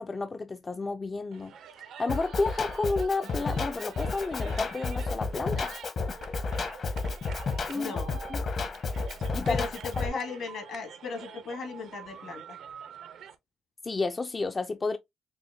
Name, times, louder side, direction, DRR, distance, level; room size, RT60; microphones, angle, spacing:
voice 1, 0.0-1.5 2.0-5.7 7.7-7.9 8.3-8.4 9.3-9.6 13.8-15.0, left 3 dB, 30° left, 0.3 m, -31 dB
sound 1, 1.3-13.3, right 8 dB, 75° right, 0.6 m, -47 dB
Drum kit, 2.1-10.1, left 4 dB, 55° left, 1.0 m, -32 dB
voice 2, 7.7-8.2 9.5-12.4, left 5 dB, 70° left, 2.0 m, -37 dB
6.1 x 2.1 x 2.6 m
cardioid pair, 90°, 0 cm